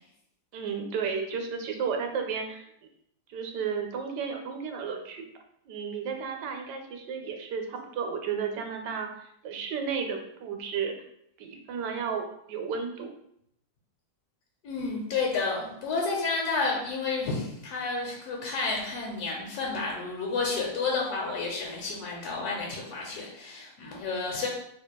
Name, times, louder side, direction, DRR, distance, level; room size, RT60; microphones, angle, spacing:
voice 1, 0.5-2.7 3.3-5.2 5.7-11.0 11.4-13.1, right 6 dB, 85° right, 4 dB, 1.2 m, -33 dB
voice 2, 14.6-24.5, left 4 dB, 70° left, -2 dB, 1.2 m, -31 dB
4.4 x 3.0 x 2.2 m, 0.73 s
omnidirectional pair, 1.8 m